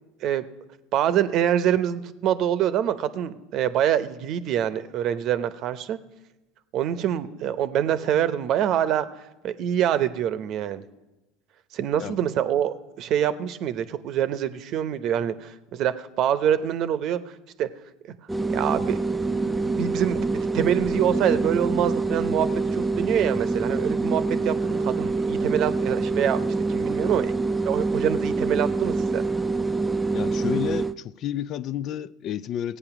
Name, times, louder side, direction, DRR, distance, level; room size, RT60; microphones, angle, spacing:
voice 1, 0.9-6.0 6.7-9.1 9.4-10.8 11.7-17.2 17.6-17.7 18.1-18.2 18.5-19.0 19.4-20.3 20.5-29.2, right 10 dB, 55° right, 0.8 m, -25 dB
sound 1, 18.3-30.9, right 3 dB, 10° right, 0.5 m, -25 dB
voice 2, 30.1-32.8, left 10 dB, 50° left, 0.3 m, -30 dB
17.0 x 8.4 x 6.0 m
hypercardioid pair, 90°, 0 cm